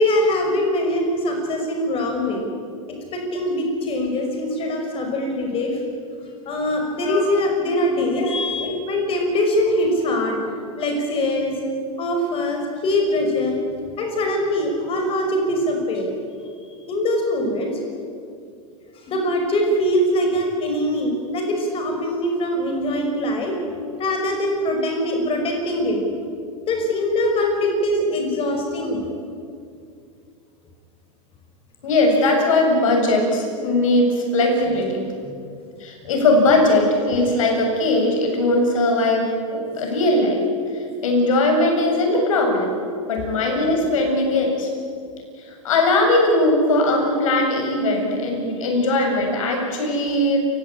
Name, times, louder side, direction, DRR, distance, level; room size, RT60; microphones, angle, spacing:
voice 1, 0.0-2.5 3.1-5.8 6.5-10.4 10.8-11.5 12.0-13.6 14.0-16.1 16.9-17.8 19.0-23.6 24.0-26.0 26.7-29.0 35.2-35.3 48.7-48.8, left 1 dB, 35° left, 3 dB, 5.4 m, -22 dB
voice 2, 8.2-8.7 31.8-35.0 35.8-40.4 40.7-42.7 43.1-44.7 45.4-50.4, left 2 dB, 75° left, 1 dB, 7.7 m, -20 dB
28.5 x 16.0 x 8.8 m, 2.4 s
hypercardioid pair, 115°, 17 cm